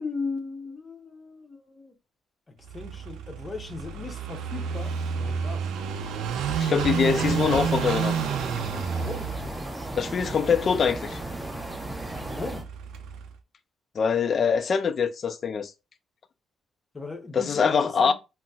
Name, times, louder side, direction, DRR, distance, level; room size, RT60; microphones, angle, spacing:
voice 1, 0.0-1.9 2.7-5.7 8.9-9.3 12.0-12.6 16.9-18.1, left 3 dB, 30° left, 0.7 m, -37 dB
Car passing by / Idling, 2.7-13.3, right 7 dB, 85° right, 0.3 m, -31 dB
voice 2, 6.6-8.2 10.0-11.2 13.9-15.7 17.3-18.1, left 6 dB, 50° left, 0.4 m, -24 dB
sound 1, 7.0-12.6, right 1 dB, 15° right, 0.6 m, -36 dB
3.9 x 2.0 x 2.3 m
cardioid pair, 90°, 0 cm